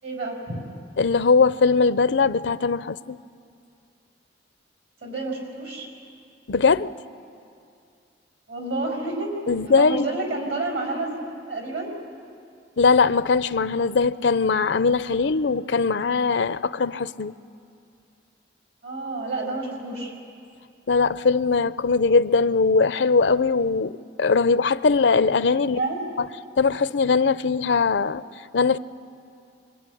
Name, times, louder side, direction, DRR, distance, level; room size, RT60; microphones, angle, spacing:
voice 1, 0.0-0.6 5.0-5.9 8.5-9.3 9.8-11.9 18.8-20.1 25.7-26.1, right 2 dB, 70° right, 6.2 m, -29 dB
voice 2, 1.0-3.2 6.5-6.9 9.5-10.0 12.8-17.3 20.9-23.9 24.2-25.8 26.2-26.3 26.6-28.2 28.5-28.8, left 4 dB, 75° left, 0.6 m, -20 dB
25.5 x 22.5 x 10.0 m
head